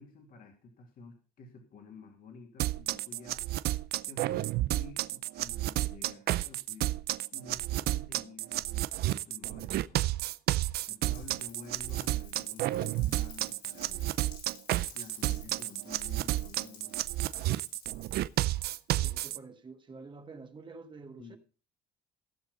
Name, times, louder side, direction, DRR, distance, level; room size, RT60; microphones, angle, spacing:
voice 1, 0.0-3.5 4.1-7.0 7.3-10.2 10.9-14.2 14.9-17.0 21.2-21.4, left 4 dB, 55° left, 2.7 m, -51 dB
sound 1, 2.6-19.4, right 15 dB, 70° right, 0.5 m, -31 dB
Rain, 11.1-19.2, left 6 dB, 80° left, 5.4 m, -53 dB
voice 2, 18.9-21.4, right 4 dB, 30° right, 1.5 m, -48 dB
15.5 x 6.5 x 5.2 m
cardioid pair, 110°, 17 cm